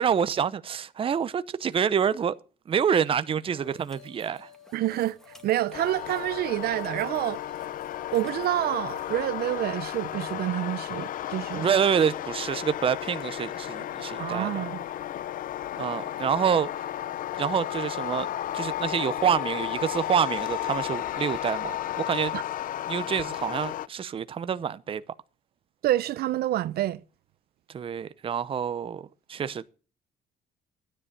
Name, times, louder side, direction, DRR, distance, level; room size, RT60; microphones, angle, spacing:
voice 1, 0.0-2.4 2.7-4.5 11.5-14.6 15.8-16.7 17.4-18.3 18.5-22.3 22.9-25.0 27.7-29.7, right 8 dB, 30° right, 0.7 m, -27 dB
sound 1, 3.6-9.3, left 6 dB, 5° left, 2.0 m, -52 dB
voice 2, 4.7-5.2 5.4-7.4 8.1-11.7 14.2-14.8 22.3-22.4 25.8-27.0, right 14 dB, 65° right, 0.7 m, -28 dB
sound 2, 5.7-23.9, left 12 dB, 55° left, 0.5 m, -33 dB
12.5 x 10.0 x 6.6 m
cardioid pair, 110°, 17 cm